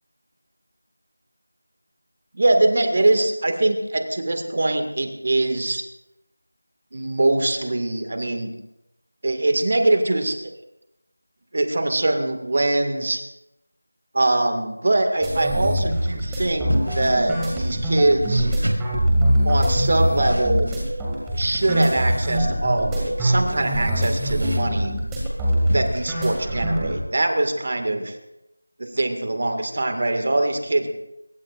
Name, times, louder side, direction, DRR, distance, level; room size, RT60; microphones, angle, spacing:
voice 1, 2.3-5.8 6.9-8.5 9.2-10.4 11.5-13.2 14.1-18.5 19.4-20.7 21.3-24.9 25.7-28.2 28.8-30.9, right 2 dB, 45° right, 6 dB, 2.0 m, -22 dB
sound 1, 15.2-27.0, equal, 5° right, 2.2 m, -23 dB
sound 2, 15.9-26.1, right 1 dB, 75° right, 5.0 m, -35 dB
23.5 x 21.0 x 2.6 m, 0.89 s
figure-of-eight pair, 170°, 0 cm